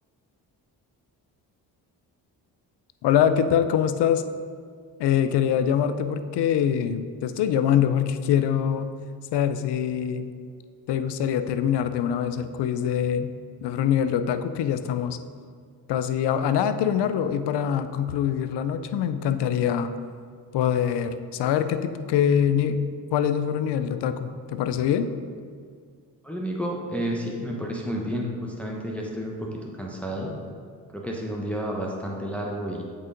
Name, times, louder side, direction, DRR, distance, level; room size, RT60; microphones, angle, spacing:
voice 1, 3.0-4.2 5.0-8.9 9.3-10.3 10.9-13.3 13.6-15.2 15.9-19.9 20.5-22.8 23.1-25.1, left 9 dB, 60° left, 11 dB, 0.6 m, -24 dB
voice 2, 26.2-30.4 30.9-32.8, equal, 5° left, -2 dB, 1.1 m, -31 dB
7.8 x 3.8 x 3.8 m, 2.1 s
hypercardioid pair, 45°, 46 cm